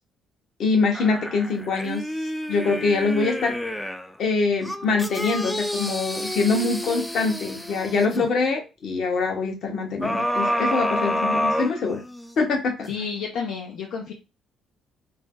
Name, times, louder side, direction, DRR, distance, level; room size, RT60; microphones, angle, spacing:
voice 1, 0.6-2.1 2.5-3.5 4.2-12.0 12.4-12.9, left 4 dB, 65° left, 2 dB, 1.0 m, -24 dB
sound 1, 0.9-4.1 4.6-8.3 10.0-12.3 12.9-13.0, equal, 5° left, 0.4 m, -28 dB
voice 2, 12.9-14.1, left 6 dB, 80° left, -1 dB, 0.5 m, -30 dB
2.7 x 2.0 x 3.5 m, 0.28 s
supercardioid pair, 65°, 0 cm